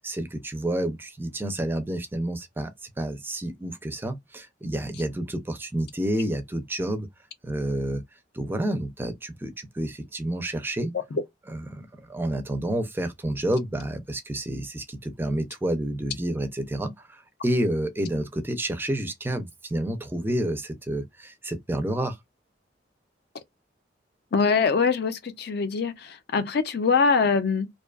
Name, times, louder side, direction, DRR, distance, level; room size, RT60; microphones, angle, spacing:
voice 1, 0.0-2.7 3.0-7.1 7.4-8.0 8.3-10.9 11.5-22.2, right 1 dB, 10° right, 0.4 m, -29 dB
voice 2, 24.3-27.7, left 5 dB, 55° left, 0.5 m, -23 dB
2.6 x 2.3 x 2.2 m
head